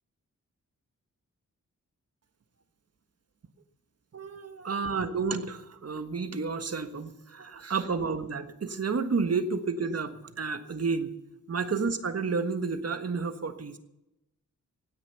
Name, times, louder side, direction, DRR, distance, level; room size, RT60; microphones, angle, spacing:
voice 1, 4.1-11.1 11.5-13.8, right 4 dB, 50° right, 9 dB, 1.4 m, -31 dB
17.0 x 9.9 x 6.9 m, 0.89 s
wide cardioid pair, 125°, 31 cm